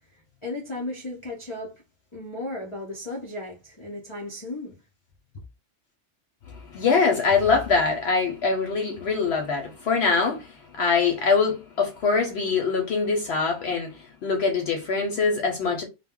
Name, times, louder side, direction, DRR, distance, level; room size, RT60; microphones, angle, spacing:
voice 1, 0.4-1.8 2.1-4.7 5.3-5.4, left 2 dB, 40° left, 0.5 m, -35 dB
voice 2, 6.5-15.8, left 4 dB, 65° left, 0.7 m, -23 dB
2.2 x 2.0 x 3.5 m
omnidirectional pair, 1.3 m